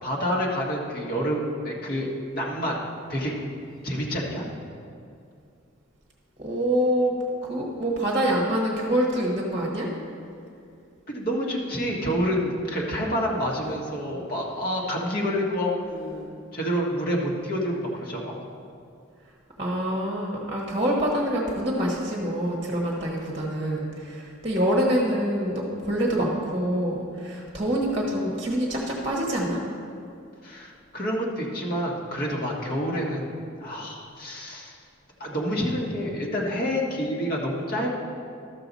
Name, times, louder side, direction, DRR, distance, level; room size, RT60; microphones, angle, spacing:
voice 1, 0.0-2.8 3.1-3.3 3.8-4.5 11.1-18.4 30.4-34.8 35.2-37.9, equal, 45° left, -3 dB, 1.5 m, -28 dB
voice 2, 6.4-7.1 7.4-9.9 19.6-29.6, equal, 25° right, -2 dB, 1.2 m, -26 dB
12.5 x 6.8 x 4.1 m, 2.4 s
head